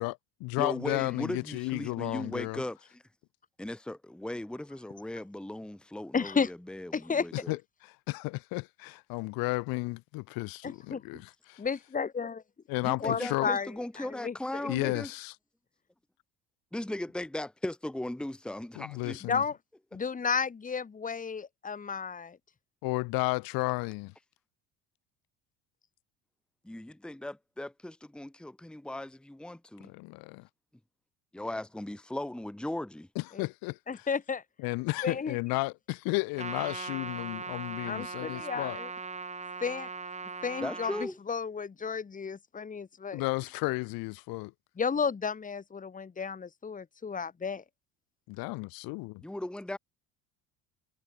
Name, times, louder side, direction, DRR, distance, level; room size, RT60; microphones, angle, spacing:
voice 1, 0.0-2.6 7.3-11.6 12.7-13.5 14.7-15.3 18.8-19.4 22.8-24.1 29.9-30.5 33.2-34.1 34.6-38.8 43.1-44.5 48.3-49.2, left 25 dB, 75° left, 2.4 m, -33 dB
voice 2, 0.6-3.0 3.6-7.6 11.1-11.2 12.8-15.1 16.7-19.2 26.6-29.9 31.3-33.1 40.6-41.2 49.2-49.8, left 1 dB, 5° left, 1.4 m, -38 dB
voice 3, 6.1-6.5 6.9-7.3 10.6-11.0 11.6-12.4 13.0-13.7 14.0-14.3 19.3-19.6 19.9-22.4 33.4-33.5 33.9-34.4 35.0-35.3 37.9-38.9 39.6-39.9 40.4-40.9 41.3-43.2 44.8-47.6, left 5 dB, 20° left, 1.7 m, -32 dB
Trumpet, 36.4-41.1, right 4 dB, 20° right, 1.6 m, -39 dB
supercardioid pair, 95°, 36 cm